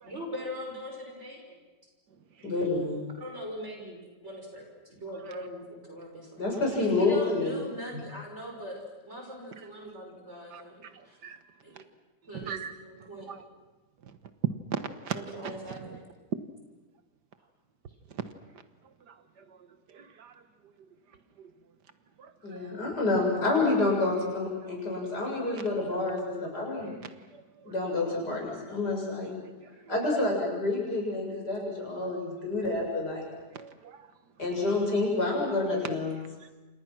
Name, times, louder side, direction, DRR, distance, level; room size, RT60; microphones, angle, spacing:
voice 1, 0.0-1.6 3.2-6.4 6.7-11.2 11.6-11.7 12.3-13.3 15.1-16.0, equal, 40° right, 6.3 m, -40 dB
voice 2, 2.4-3.0 6.4-7.6 7.9-8.0 22.4-26.9 27.7-29.3 29.9-33.3 34.4-36.2, left 2 dB, 70° left, 7.5 m, -28 dB
voice 3, 12.3-12.7 13.3-13.4 14.7-14.8 15.1-15.2 15.4-15.6 19.1-19.2 19.9-20.3 22.2-22.6 27.3-27.7 33.5-34.0, right 7 dB, 75° right, 1.8 m, -38 dB
29.0 x 27.0 x 6.2 m
omnidirectional pair, 1.8 m